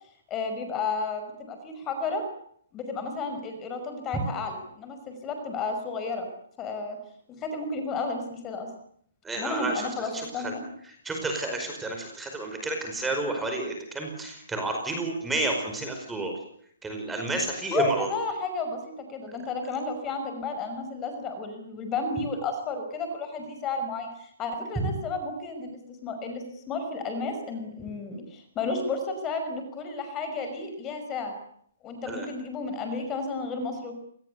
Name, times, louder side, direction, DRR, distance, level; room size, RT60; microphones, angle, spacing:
voice 1, 0.3-2.2 2.7-6.3 6.6-7.0 7.3-8.7 9.3-10.6 17.7-31.3 31.8-34.0, left 3 dB, 20° left, 6 dB, 5.6 m, -32 dB
voice 2, 9.2-10.5 11.0-16.3 16.8-18.1 24.8-24.9 32.1-32.3, right 2 dB, 10° right, 4 dB, 5.1 m, -30 dB
27.0 x 20.5 x 8.2 m, 0.66 s
hypercardioid pair, 150°, 0 cm